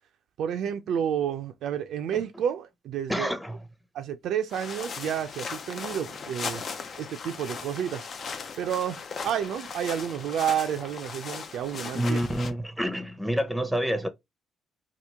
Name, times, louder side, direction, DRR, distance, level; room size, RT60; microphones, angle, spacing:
voice 1, 0.4-3.3 3.9-6.6 7.0-8.1 8.6-12.2, right 9 dB, 75° right, 0.4 m, -30 dB
voice 2, 3.1-3.6 11.9-14.1, equal, ahead, 0.7 m, -28 dB
sound 1, 4.5-12.5, left 5 dB, 55° left, 0.5 m, -38 dB
2.9 x 2.4 x 3.4 m
supercardioid pair, 70°, 0 cm